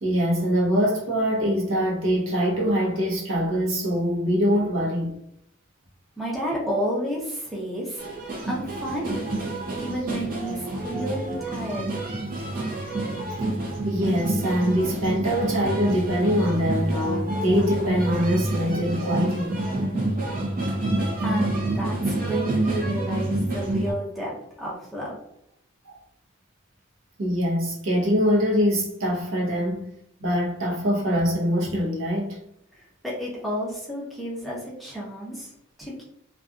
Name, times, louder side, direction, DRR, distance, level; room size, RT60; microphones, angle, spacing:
voice 1, 0.0-5.2 13.8-19.6 25.8-26.0 27.2-29.9 30.2-32.4, equal, 70° right, 0.9 m, -23 dB
voice 2, 6.2-8.0 8.4-9.3 9.8-11.9 21.2-25.2 32.7-35.5 35.8-36.0, equal, ahead, 0.7 m, -31 dB
sound 1, 8.0-23.9, right 1 dB, 40° right, 0.6 m, -28 dB
2.6 x 2.3 x 2.4 m
head